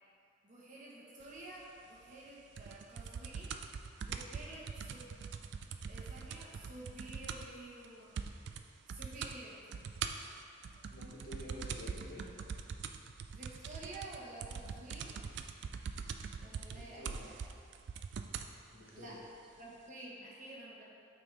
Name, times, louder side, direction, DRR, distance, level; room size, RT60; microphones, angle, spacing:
voice 1, 0.4-3.6 3.8-5.2 5.9-8.2 8.9-9.8 13.3-15.3 16.4-17.4 18.9-19.2 19.6-20.8, right 2 dB, 40° right, -6 dB, 1.2 m, -50 dB
sound 1, 2.6-7.6 7.8-7.9 8.2-8.6 8.9-9.4 9.7-18.5 19.3-19.4, right 6 dB, 60° right, 0.3 m, -42 dB
voice 2, 10.9-12.3 16.5-17.3 18.7-19.2, left 1 dB, 45° left, -4 dB, 1.0 m, -49 dB
9.1 x 4.1 x 3.4 m, 2.5 s
head